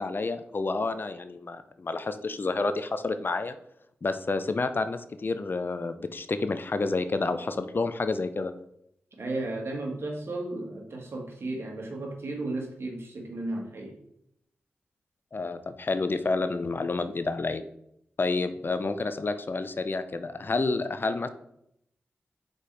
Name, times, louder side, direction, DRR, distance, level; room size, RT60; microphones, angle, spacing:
voice 1, 0.0-3.6 4.0-8.5 15.3-17.6 18.2-21.3, left 3 dB, 50° left, 10 dB, 0.6 m, -29 dB
voice 2, 9.2-14.0, right 2 dB, 65° right, 0 dB, 1.7 m, -34 dB
5.2 x 4.3 x 4.7 m, 0.75 s
cardioid pair, 45°, 5 cm